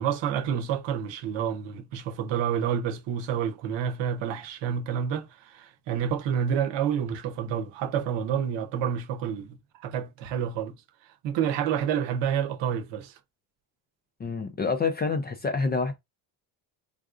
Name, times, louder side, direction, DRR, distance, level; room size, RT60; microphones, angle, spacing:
voice 1, 0.0-9.6 9.8-10.7 11.2-13.1, right 8 dB, 70° right, 0.8 m, -29 dB
voice 2, 14.2-15.9, left 4 dB, 25° left, 0.4 m, -27 dB
3.6 x 2.5 x 2.4 m
cardioid pair, 135°, 45 cm